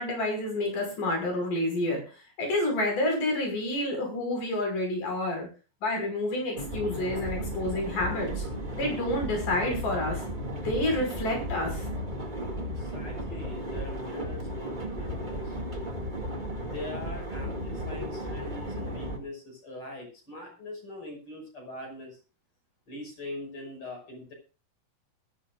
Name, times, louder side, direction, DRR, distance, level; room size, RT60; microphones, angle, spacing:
voice 1, 0.0-2.0 2.4-5.5 5.8-8.4 8.7-10.2 10.6-11.8, left 1 dB, 55° left, 2 dB, 7.1 m, -29 dB
sound 1, 6.5-19.2, equal, 20° right, 1.4 m, -34 dB
voice 2, 12.8-15.6 16.6-22.2 22.9-24.3, left 2 dB, 35° left, 1 dB, 6.5 m, -42 dB
20.5 x 13.0 x 2.5 m, 0.34 s
omnidirectional pair, 4.4 m